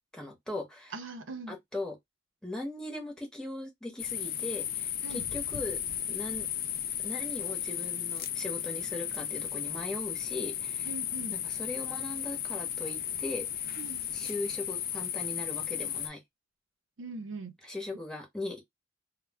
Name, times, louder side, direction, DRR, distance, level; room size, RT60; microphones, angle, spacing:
voice 1, 0.1-0.9 1.5-2.0 2.4-5.8 6.1-6.5 7.0-10.9 11.3-13.5 14.1-16.2 17.7-18.6, left 2 dB, 5° left, 0.8 m, -39 dB
voice 2, 0.9-1.6 5.0-5.3 10.8-11.4 13.8-14.0 17.0-17.5, right 3 dB, 70° right, 0.5 m, -41 dB
sound 1, 4.0-16.1, left 10 dB, 50° left, 0.3 m, -35 dB
2.2 x 2.0 x 3.3 m
head